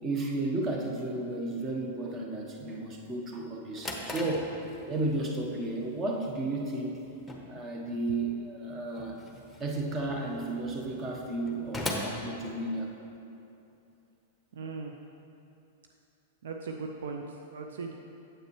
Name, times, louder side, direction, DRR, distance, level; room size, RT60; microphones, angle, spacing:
voice 1, 0.0-4.5 4.9-7.0 7.5-9.2 9.6-12.9, right 2 dB, 25° right, 1 dB, 1.0 m, -33 dB
Drawer open or close, 3.7-13.2, left 1 dB, 5° left, 0.9 m, -42 dB
voice 2, 14.5-14.9 16.4-17.9, right 4 dB, 60° right, 2 dB, 0.4 m, -38 dB
9.2 x 7.7 x 3.1 m, 2.8 s
figure-of-eight pair, 100°, 0 cm